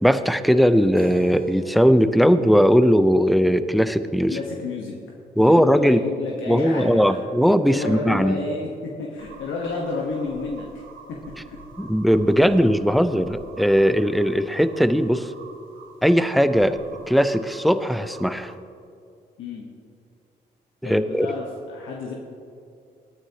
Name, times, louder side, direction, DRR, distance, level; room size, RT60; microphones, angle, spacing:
voice 1, 0.0-4.4 5.4-6.0 6.5-8.4 11.8-15.3 16.0-16.8 17.1-18.5 20.8-21.3, equal, ahead, 12 dB, 0.6 m, -19 dB
Keyboard (musical), 1.0-5.0, equal, 45° right, 1.8 m, -47 dB
voice 2, 4.3-4.9 5.4-7.2 7.7-10.7 11.4-11.9 19.4-19.6 20.8-22.1, left 3 dB, 75° left, -1 dB, 1.2 m, -30 dB
sound 1, 9.2-18.5, right 4 dB, 80° right, 1.1 m, -46 dB
17.5 x 9.7 x 2.9 m, 2.5 s
supercardioid pair, 50°, 20 cm